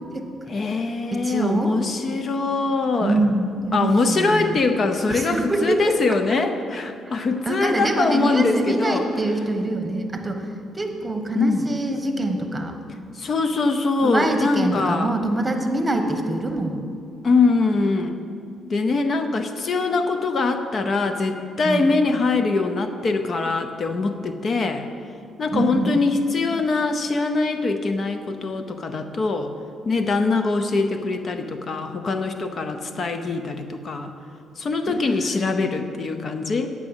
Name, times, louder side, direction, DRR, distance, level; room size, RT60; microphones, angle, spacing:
voice 1, 0.5-3.2 3.7-9.1 11.3-11.7 13.1-15.1 17.2-18.2 18.7-24.9 25.4-29.5 29.8-34.1 34.6-36.7, left 3 dB, 45° left, 7 dB, 0.7 m, -23 dB
voice 2, 1.1-1.8 3.0-4.6 5.0-6.0 7.4-10.5 10.7-12.8 14.0-16.8 21.6-22.0 25.5-25.9 34.9-35.4 35.6-35.7, right 2 dB, 15° right, 4 dB, 1.2 m, -25 dB
9.5 x 6.2 x 8.1 m, 2.5 s
cardioid pair, 90°, 0 cm